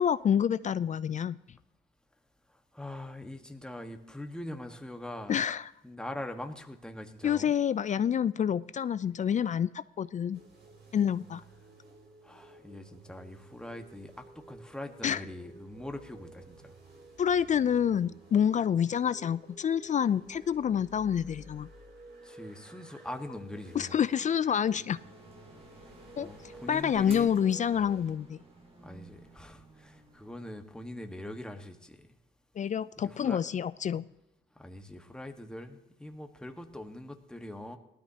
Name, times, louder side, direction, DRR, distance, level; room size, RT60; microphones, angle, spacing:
voice 1, 0.0-1.4 5.3-5.7 7.2-10.4 10.9-11.4 15.0-15.2 17.2-21.7 23.7-25.0 26.2-26.3 26.7-28.4 32.6-34.0, left 8 dB, 40° left, 17 dB, 0.4 m, -28 dB
voice 2, 2.7-5.4 5.8-7.5 12.2-16.7 22.2-24.0 26.2-27.3 28.8-32.1 33.0-33.4 34.6-37.8, left 1 dB, 5° left, 5 dB, 1.4 m, -42 dB
sound 1, 10.3-28.1, right 2 dB, 60° right, 2.7 m, -53 dB
sound 2, 24.9-30.5, right 1 dB, 30° right, 2.2 m, -53 dB
18.5 x 13.0 x 2.9 m, 0.93 s
cardioid pair, 90°, 20 cm